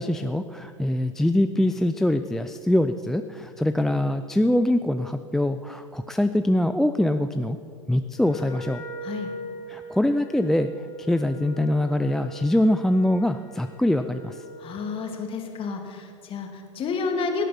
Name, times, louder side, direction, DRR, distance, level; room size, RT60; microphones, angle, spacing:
voice 1, 0.0-7.6 7.9-8.8 9.7-10.7 11.0-14.4, left 1 dB, ahead, 8 dB, 0.4 m, -23 dB
Wind instrument woodwind instrument, 8.1-14.8, equal, 80° left, 3.6 m, -41 dB
voice 2, 14.6-17.4, left 4 dB, 35° left, 4 dB, 2.1 m, -30 dB
17.0 x 9.1 x 5.8 m, 2.2 s
hypercardioid pair, 90°, 17 cm